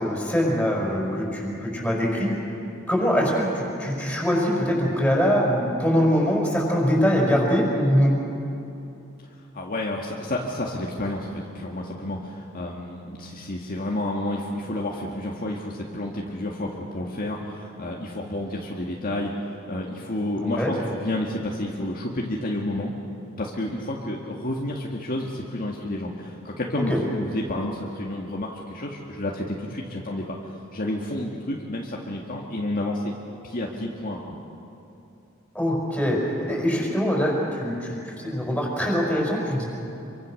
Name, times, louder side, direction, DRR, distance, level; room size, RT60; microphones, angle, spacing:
voice 1, 0.0-2.3 2.9-8.1 20.4-20.7 26.9-27.0 35.5-39.6, equal, 5° left, -2 dB, 5.8 m, -23 dB
voice 2, 9.5-22.9 23.4-30.4 30.7-33.1 33.4-34.2, left 1 dB, 45° left, -2 dB, 2.0 m, -30 dB
27.0 x 24.5 x 6.6 m, 2.8 s
head